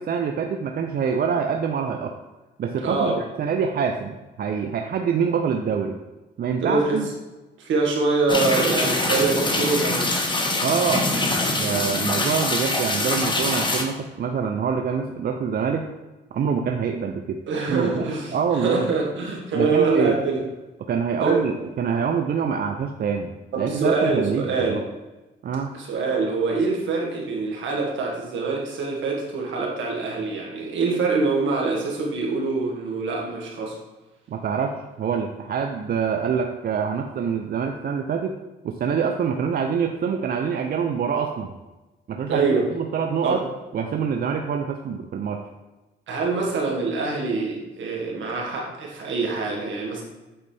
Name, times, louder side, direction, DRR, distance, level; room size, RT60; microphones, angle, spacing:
voice 1, 0.0-2.2 2.6-6.0 6.4-7.1 10.6-15.9 16.3-17.4 17.7-18.9 19.5-20.2 20.9-23.3 23.6-24.8 25.4-25.7 34.3-38.4 38.6-41.5 42.1-43.4 43.7-45.4, right 6 dB, 50° right, 4 dB, 0.5 m, -25 dB
voice 2, 2.8-3.2 6.6-7.0 7.6-10.1 17.5-20.4 21.2-21.4 23.5-24.8 25.7-33.7 42.3-42.6 43.2-43.4 46.1-50.0, right 3 dB, 75° right, -1 dB, 1.7 m, -24 dB
sound 1, 8.3-13.8, left 2 dB, 25° left, 1.0 m, -24 dB
8.7 x 4.0 x 3.3 m, 1.1 s
cardioid pair, 90°, 20 cm